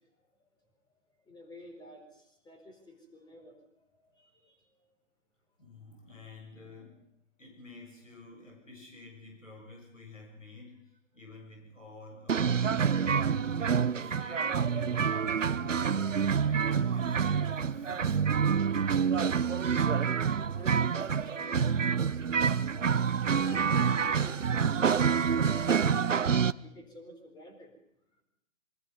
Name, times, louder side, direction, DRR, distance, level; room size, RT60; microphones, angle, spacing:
voice 1, 1.3-3.6 4.1-4.6 19.5-20.1 20.4-22.6 23.2-25.9 26.6-27.7, left 1 dB, 10° left, 5 dB, 4.4 m, -50 dB
voice 2, 3.7-4.3 4.7-4.9 5.6-7.1 7.4-18.8, left 3 dB, 80° left, 0 dB, 7.9 m, -51 dB
sound 1, 12.3-26.5, right 6 dB, 80° right, 0.9 m, -27 dB
26.5 x 23.0 x 5.4 m, 0.76 s
figure-of-eight pair, 125°, 38 cm